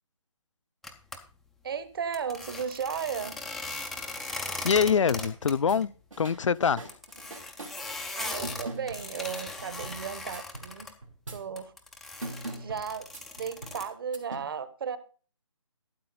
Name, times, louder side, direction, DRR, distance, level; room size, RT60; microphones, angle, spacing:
sound 1, 0.8-1.2 2.1-5.5 5.8-5.9 6.2-6.3 6.9-10.9 11.6-13.9, left 2 dB, ahead, 0.4 m, -38 dB
voice 1, 1.6-3.4 8.1-10.9 11.3-11.7 12.1-15.0, right 6 dB, 45° right, 1.2 m, -35 dB
voice 2, 4.6-6.9, left 6 dB, 70° left, 0.5 m, -24 dB
sound 2, 5.4-5.8 6.1-7.8 8.4-10.0 10.3-10.7 11.0-11.5 12.2-13.8 14.1-14.4, right 2 dB, 85° right, 2.9 m, -41 dB
13.0 x 7.5 x 4.0 m
figure-of-eight pair, 155°, 16 cm